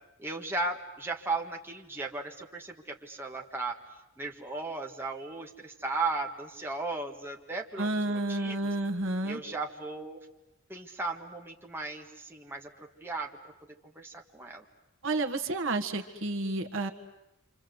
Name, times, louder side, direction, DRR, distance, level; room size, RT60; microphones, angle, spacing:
voice 1, 0.2-3.8 4.2-8.6 9.2-10.2 10.7-13.3 13.9-14.6, right 3 dB, 10° right, 0 dB, 1.6 m, -36 dB
voice 2, 7.8-9.4 15.0-16.9, right 2 dB, 60° right, 5 dB, 1.6 m, -30 dB
28.5 x 26.0 x 8.0 m, 0.92 s
head